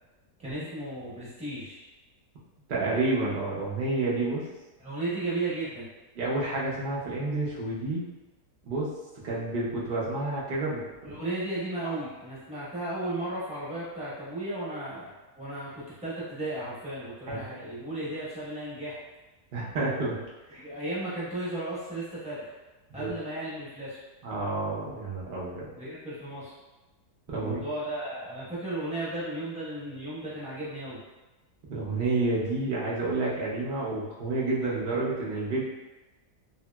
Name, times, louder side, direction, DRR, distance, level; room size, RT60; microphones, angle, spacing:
voice 1, 0.4-1.8 4.8-5.9 11.0-15.7 16.0-19.0 20.5-22.5 22.9-24.0 25.7-26.5 27.3-31.0, right 2 dB, 5° right, -11 dB, 0.6 m, -35 dB
voice 2, 2.7-4.4 6.1-8.0 8.7-8.9 9.2-11.2 11.8-11.9 17.3-17.4 19.5-20.2 20.5-20.6 22.9-23.1 24.2-25.7 27.3-27.6 31.7-35.6, right 2 dB, 85° right, -6 dB, 0.4 m, -29 dB
2.9 x 2.8 x 2.2 m, 1.1 s
omnidirectional pair, 1.8 m